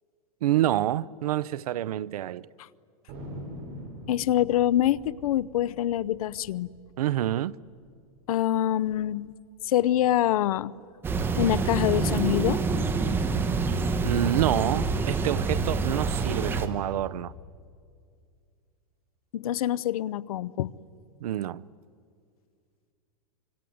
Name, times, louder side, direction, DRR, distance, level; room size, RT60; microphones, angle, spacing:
voice 1, 0.4-2.5 7.0-7.6 14.0-17.3 21.2-21.6, right 12 dB, 90° right, 0.7 m, -27 dB
Thunder, 3.1-8.2 8.5-9.0 9.5-10.7, equal, 45° right, 6.3 m, -44 dB
voice 2, 4.1-6.7 8.3-9.3 9.6-10.7 11.4-12.6 19.3-20.7, left 12 dB, 75° left, 0.7 m, -25 dB
sound 1, 11.0-16.7, right 4 dB, 10° right, 1.0 m, -27 dB
26.0 x 24.0 x 9.4 m
supercardioid pair, 170°, 19 cm